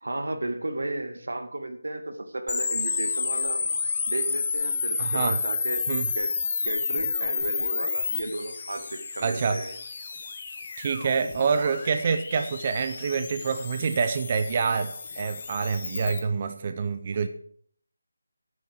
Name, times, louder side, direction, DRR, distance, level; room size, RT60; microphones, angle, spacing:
voice 1, 0.0-3.6 4.1-5.9 6.1-6.4 6.6-9.7, right 2 dB, 85° right, 7 dB, 2.0 m, -33 dB
sound 1, 2.5-16.2, left 5 dB, 25° left, 1.2 m, -31 dB
voice 2, 5.0-5.4 5.9-6.1 9.2-9.6 10.8-17.3, right 5 dB, 20° right, 9 dB, 0.5 m, -26 dB
9.6 x 9.4 x 6.3 m, 0.62 s
figure-of-eight pair, 175°, 0 cm